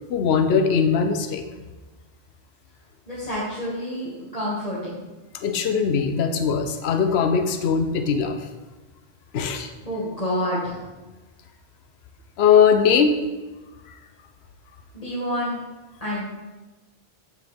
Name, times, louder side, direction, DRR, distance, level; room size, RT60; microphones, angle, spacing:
voice 1, 0.1-1.4 5.3-8.4 9.3-9.7 12.4-13.2, left 6 dB, 65° left, 6 dB, 1.0 m, -20 dB
voice 2, 3.1-5.0 9.8-10.8 14.9-15.6 16.0-16.2, equal, 35° left, -9 dB, 2.3 m, -28 dB
14.5 x 6.1 x 3.6 m, 1.2 s
omnidirectional pair, 1.2 m